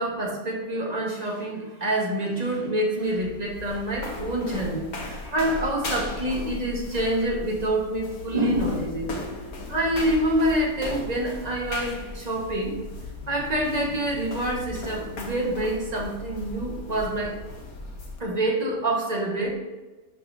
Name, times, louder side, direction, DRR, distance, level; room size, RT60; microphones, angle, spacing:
voice 1, 0.0-9.1 9.7-12.7 13.3-17.3 18.2-19.5, right 1 dB, 30° right, -2 dB, 1.6 m, -26 dB
sound 1, 2.9-18.2, left 2 dB, 75° left, 1.7 m, -37 dB
11.0 x 5.4 x 2.8 m, 1.2 s
omnidirectional pair, 1.6 m